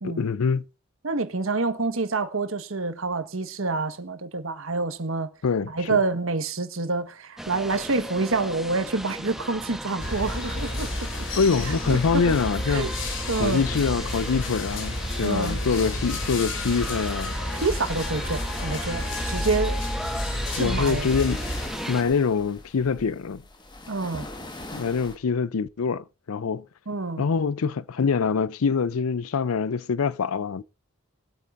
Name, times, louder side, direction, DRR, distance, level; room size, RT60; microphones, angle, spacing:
voice 1, 0.0-0.6 5.4-6.0 11.4-12.9 13.4-17.3 20.6-21.4 21.9-23.4 24.7-26.6 27.2-30.6, left 5 dB, 80° left, 0.5 m, -25 dB
voice 2, 1.0-5.3 5.6-11.3 11.6-12.3 12.7-12.9 13.3-13.6 15.2-15.6 17.6-19.8 20.5-21.0 23.9-24.3 26.9-27.2, right 3 dB, 70° right, 1.4 m, -27 dB
sound 1, 7.4-22.0, equal, ahead, 1.0 m, -36 dB
sound 2, 10.0-21.7, left 1 dB, 55° left, 3.2 m, -31 dB
sound 3, 17.6-25.2, left 1 dB, 20° left, 1.5 m, -42 dB
22.5 x 8.4 x 2.6 m
head